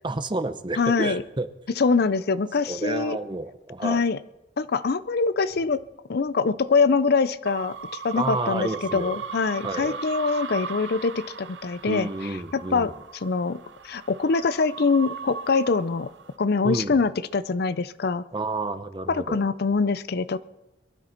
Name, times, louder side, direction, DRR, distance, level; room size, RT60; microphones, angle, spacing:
voice 1, 0.0-1.5 2.7-4.0 8.2-9.2 9.6-10.0 11.9-12.9 16.6-17.0 18.3-19.4, right 2 dB, 25° right, 11 dB, 0.8 m, -30 dB
voice 2, 0.8-1.2 1.8-3.2 3.8-4.2 4.6-5.8 6.1-7.8 8.0-12.1 12.5-12.9 13.2-13.6 13.8-16.1 16.4-18.2 19.1-20.4, left 4 dB, 55° left, 14 dB, 0.5 m, -24 dB
sound 1, 7.4-16.3, right 5 dB, 75° right, 0.8 m, -38 dB
22.5 x 12.5 x 4.5 m, 0.96 s
head